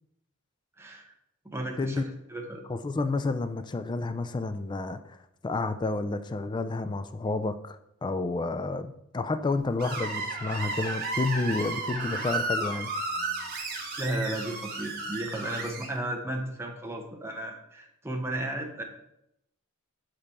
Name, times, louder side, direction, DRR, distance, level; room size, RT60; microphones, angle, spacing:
voice 1, 0.8-1.1 1.4-2.6 13.7-18.8, right 1 dB, 10° right, 1 dB, 0.8 m, -34 dB
voice 2, 2.7-5.2 5.4-12.9, left 3 dB, 20° left, 10 dB, 0.3 m, -30 dB
Screech, 9.8-15.9, right 2 dB, 45° right, 1.4 m, -33 dB
5.9 x 5.2 x 4.2 m, 0.79 s
head